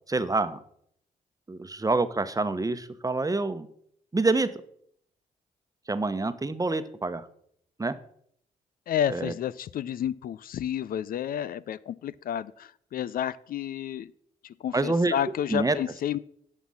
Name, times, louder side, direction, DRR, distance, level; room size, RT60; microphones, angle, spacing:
voice 1, 0.1-0.6 1.5-3.7 4.1-4.5 5.9-7.3 7.8-8.0 9.1-9.3 14.7-15.1 15.5-15.8, right 3 dB, 20° right, 12 dB, 1.0 m, -26 dB
voice 2, 8.9-14.1 14.4-16.2, left 10 dB, 65° left, 18 dB, 0.4 m, -31 dB
10.5 x 6.2 x 5.6 m, 0.66 s
supercardioid pair, 55°, 16 cm